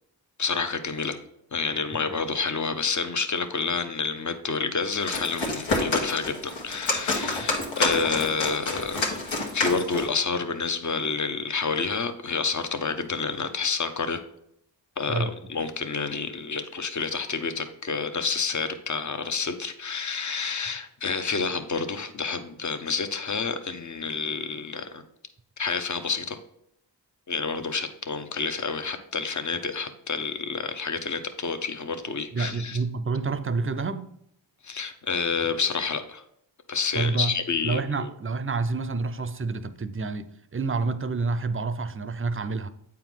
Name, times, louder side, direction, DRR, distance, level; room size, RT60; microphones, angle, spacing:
voice 1, 0.4-1.2 1.5-9.2 9.5-14.2 15.0-25.0 25.6-26.4 27.3-32.8 34.6-36.2 36.7-38.1, left 5 dB, 40° left, 0.9 m, -29 dB
sound 1, 4.9-10.1, left 2 dB, 80° left, 1.5 m, -28 dB
voice 2, 32.3-34.1 36.9-37.3 37.6-42.7, right 4 dB, 30° right, 0.6 m, -28 dB
8.4 x 4.5 x 3.7 m
cardioid pair, 55°, 45 cm